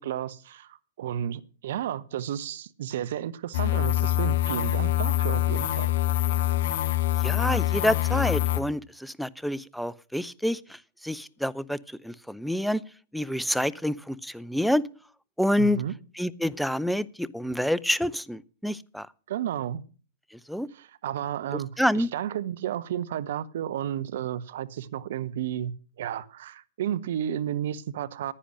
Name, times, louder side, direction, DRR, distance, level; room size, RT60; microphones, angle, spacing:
voice 1, 0.0-5.9 15.6-15.9 19.3-19.8 20.7-28.3, right 10 dB, 60° right, 0.8 m, -32 dB
sound 1, 3.5-8.6, left 14 dB, 55° left, 0.7 m, -25 dB
voice 2, 7.2-12.8 13.1-14.8 15.4-15.8 16.2-19.1 20.5-20.7 21.8-22.1, equal, ahead, 0.5 m, -27 dB
10.0 x 10.0 x 6.3 m
figure-of-eight pair, 100°, 0 cm